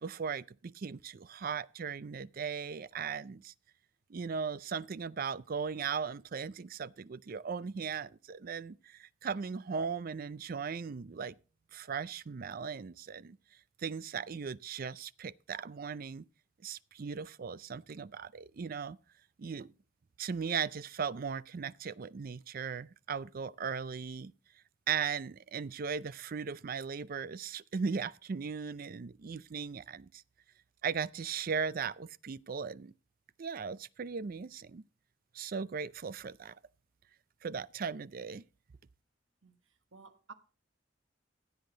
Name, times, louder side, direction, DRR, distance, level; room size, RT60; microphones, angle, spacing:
voice 1, 0.0-3.5 4.1-11.3 11.7-13.4 13.8-16.2 16.6-19.0 19.4-19.7 20.2-24.3 24.9-30.1 30.8-32.9 33.4-34.8 35.3-36.5 37.4-38.4, right 6 dB, 50° right, 0.4 m, -38 dB
voice 2, 39.9-40.3, right 4 dB, 85° right, 1.4 m, -52 dB
15.5 x 8.1 x 3.8 m
head